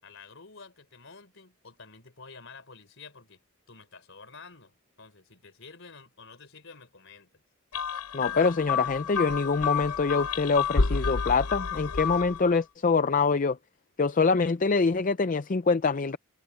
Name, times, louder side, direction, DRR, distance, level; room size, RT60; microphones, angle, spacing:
voice 1, 0.0-3.4 3.7-7.4, left 4 dB, 60° left, 4.3 m, -50 dB
sound 1, 7.7-12.5, left 5 dB, 85° left, 0.9 m, -29 dB
voice 2, 8.1-13.6 14.0-16.2, left 4 dB, 35° left, 0.5 m, -25 dB
head